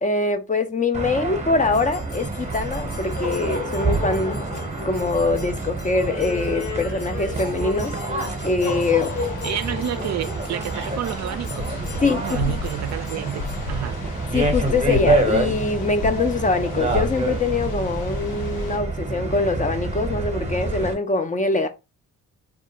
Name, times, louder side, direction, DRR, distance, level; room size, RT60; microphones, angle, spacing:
voice 1, 0.0-4.4 4.8-7.9 8.4-9.2 12.0-12.6 14.3-21.7, left 3 dB, 20° left, 0.4 m, -23 dB
sound 1, 0.9-20.9, right 3 dB, 20° right, 0.8 m, -27 dB
sound 2, 1.7-13.6, left 5 dB, 40° left, 0.8 m, -35 dB
sound 3, 8.6-18.8, left 5 dB, 80° left, 0.6 m, -33 dB
voice 2, 9.4-14.0, right 11 dB, 50° right, 0.4 m, -30 dB
2.4 x 2.3 x 2.8 m
supercardioid pair, 60°, 35 cm